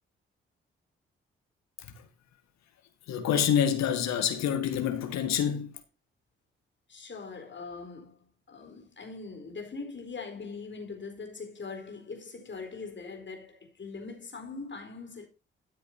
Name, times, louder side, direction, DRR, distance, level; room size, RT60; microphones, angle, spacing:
voice 1, 3.1-5.7, left 9 dB, 65° left, 1.9 m, -27 dB
voice 2, 6.9-8.2 8.5-15.3, left 4 dB, 40° left, 4.4 m, -41 dB
13.0 x 9.3 x 2.8 m
hypercardioid pair, 40°, 29 cm